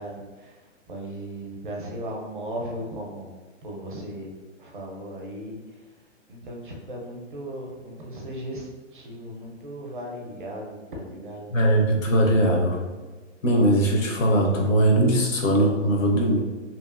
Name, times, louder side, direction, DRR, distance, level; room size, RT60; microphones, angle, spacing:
voice 1, 0.0-3.3 3.6-5.9 6.3-11.5, right 1 dB, 40° right, -1 dB, 0.5 m, -37 dB
voice 2, 11.5-12.8 13.4-16.4, right 1 dB, 80° left, 0 dB, 0.8 m, -20 dB
2.7 x 2.4 x 2.4 m, 1.3 s
hypercardioid pair, 180°, 38 cm